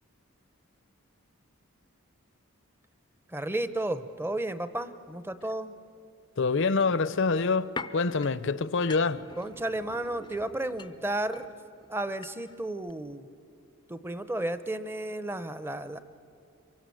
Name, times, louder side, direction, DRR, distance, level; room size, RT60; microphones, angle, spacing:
voice 1, 3.3-5.7 9.4-11.5 11.9-13.3 13.9-16.0, right 1 dB, 10° right, 0.7 m, -33 dB
voice 2, 6.4-9.3, left 4 dB, 55° left, 0.7 m, -26 dB
sound 1, 6.8-12.6 12.9-13.0, left 4 dB, 20° left, 0.5 m, -45 dB
26.0 x 24.0 x 7.7 m
head